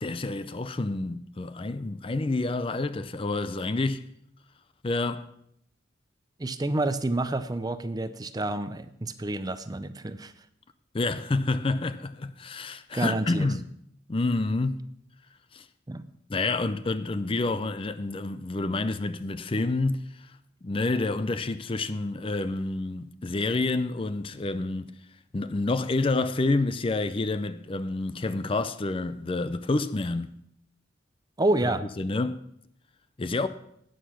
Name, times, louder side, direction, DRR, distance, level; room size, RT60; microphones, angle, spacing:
voice 1, 0.0-4.1 4.8-5.3 10.9-13.6 14.1-14.8 15.5-15.6 16.3-20.3 20.6-24.9 25.3-30.3 31.6-32.4 33.2-33.5, left 2 dB, 30° left, 0.5 m, -28 dB
voice 2, 6.4-10.3 12.9-13.5 15.9-16.0 31.4-31.9, right 2 dB, 20° right, 0.6 m, -28 dB
11.0 x 9.3 x 6.2 m
head